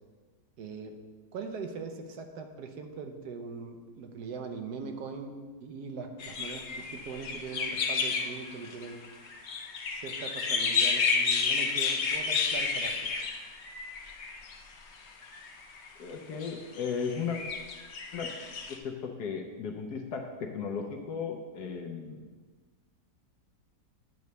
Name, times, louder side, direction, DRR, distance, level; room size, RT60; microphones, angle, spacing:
voice 1, 0.6-1.0 1.3-9.0 9.9-13.0, right 4 dB, 70° right, 5 dB, 1.2 m, -41 dB
sound 1, 6.2-14.6 15.2-15.9 16.4-18.7, left 5 dB, 55° left, 0.8 m, -31 dB
voice 2, 16.0-17.4 18.1-18.3 18.7-22.3, left 6 dB, 70° left, 3 dB, 1.2 m, -35 dB
9.3 x 3.1 x 6.6 m, 1.4 s
omnidirectional pair, 1.9 m